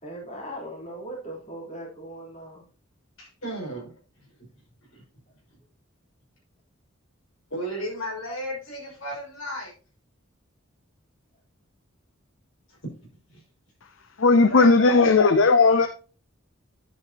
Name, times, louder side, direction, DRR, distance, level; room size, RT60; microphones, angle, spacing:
voice 1, 0.0-2.6 15.7-15.9, right 1 dB, 35° left, -2 dB, 3.7 m, -39 dB
voice 2, 3.2-3.9 4.9-5.0 7.5-9.7 13.3-13.4 14.5-15.0, equal, 80° left, -1 dB, 5.7 m, -34 dB
voice 3, 14.2-15.9, left 3 dB, 65° left, 10 dB, 0.6 m, -16 dB
10.5 x 8.1 x 2.9 m, 0.35 s
head